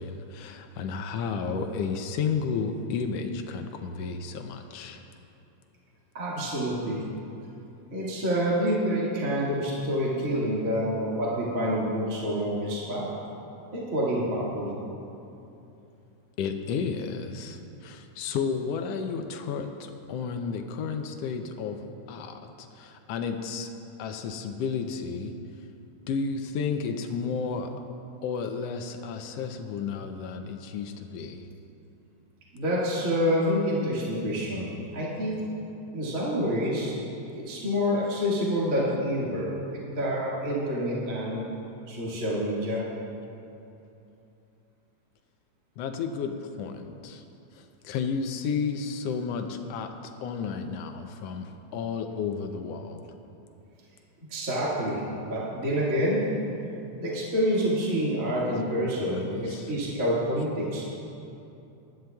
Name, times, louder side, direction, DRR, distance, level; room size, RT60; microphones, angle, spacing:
voice 1, 0.0-5.0 16.4-23.7 24.0-25.3 26.1-27.7 28.2-31.5 45.8-47.2 47.5-49.9 50.2-53.1 58.8-59.7, left 5 dB, 75° left, 6 dB, 1.5 m, -32 dB
voice 2, 6.1-7.0 7.9-13.1 13.7-14.7 32.5-35.4 35.9-37.0 37.3-41.4 41.9-42.8 54.3-56.2 56.9-61.0, equal, 30° right, -7 dB, 2.0 m, -27 dB
20.0 x 12.0 x 2.3 m, 2.8 s
omnidirectional pair, 3.3 m